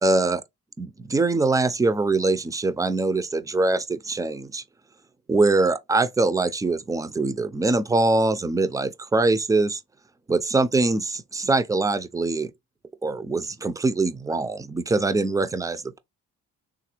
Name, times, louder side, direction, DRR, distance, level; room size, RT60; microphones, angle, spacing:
voice 1, 0.0-0.4 0.8-4.6 5.3-9.8 10.3-12.5 13.0-16.0, right 3 dB, 10° right, 0.3 m, -23 dB
3.3 x 2.4 x 2.9 m
cardioid pair, 90°, 30 cm